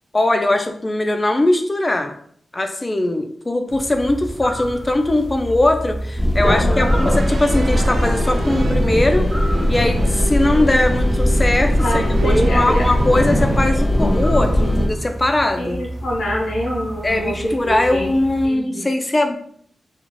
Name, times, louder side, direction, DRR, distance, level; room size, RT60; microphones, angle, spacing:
voice 1, 0.1-2.1 2.5-9.3 9.7-15.8 17.0-19.4, left 1 dB, 30° left, 5 dB, 0.4 m, -20 dB
sound 1, 3.7-18.5, right 1 dB, 40° right, 0.6 m, -31 dB
sound 2, 6.2-14.9, left 1 dB, 15° left, 0.8 m, -19 dB
voice 2, 6.4-6.9 11.8-12.8 15.6-18.1 18.4-18.9, equal, 90° left, -3 dB, 0.8 m, -25 dB
sound 3, 6.8-13.6, right 2 dB, 70° right, 0.3 m, -27 dB
2.5 x 2.4 x 3.1 m, 0.63 s
cardioid pair, 55°, 0 cm